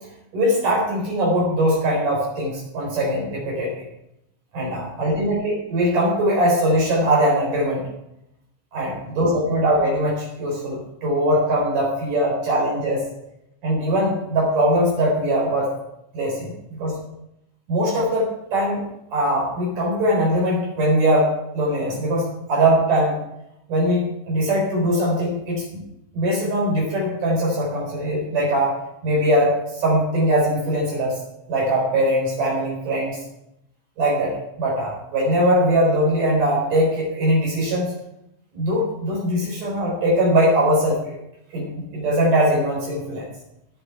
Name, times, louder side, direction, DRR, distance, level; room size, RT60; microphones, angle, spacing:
voice 1, 0.3-3.8 4.5-7.8 8.7-13.0 13.6-15.7 16.1-17.0 17.7-23.1 23.7-25.8 26.1-28.7 29.0-31.2 31.5-33.2 34.0-37.9 38.5-41.1 41.5-43.2, equal, 45° right, -3 dB, 5.1 m, -21 dB
18.0 x 7.0 x 4.6 m, 0.85 s
omnidirectional pair, 5.3 m